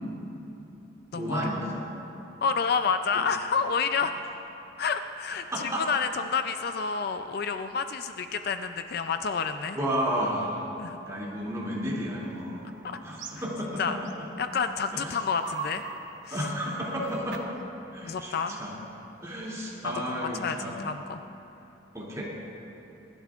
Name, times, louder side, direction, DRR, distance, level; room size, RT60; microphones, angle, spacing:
voice 1, 1.1-1.8 5.5-5.8 9.7-10.6 11.1-12.6 13.0-14.0 14.9-15.2 16.3-17.4 17.9-18.7 19.2-20.8 21.9-22.2, equal, 15° right, -6 dB, 2.7 m, -32 dB
voice 2, 2.4-4.1 4.8-9.8 10.8-11.0 12.8-13.0 13.8-14.0 14.4-15.8 16.2-16.4 18.0-18.6 19.8-21.2, left 5 dB, 55° left, 8 dB, 0.4 m, -29 dB
sound 1, 12.2-14.6 15.0-17.6, right 4 dB, 90° right, 0.9 m, -42 dB
26.0 x 12.0 x 2.5 m, 3.0 s
head